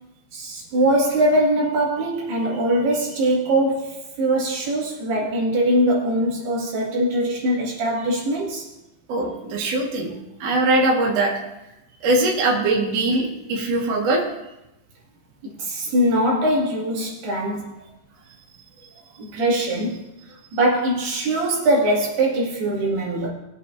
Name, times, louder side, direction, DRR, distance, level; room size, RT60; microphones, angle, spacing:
voice 1, 0.3-8.7 15.4-17.7 19.2-20.0 20.5-23.3, right 1 dB, 75° right, -4 dB, 4.4 m, -22 dB
voice 2, 9.1-10.1 10.4-11.3 12.0-14.2, right 2 dB, 50° right, -2 dB, 2.5 m, -21 dB
20.0 x 8.2 x 2.7 m, 0.92 s
omnidirectional pair, 4.6 m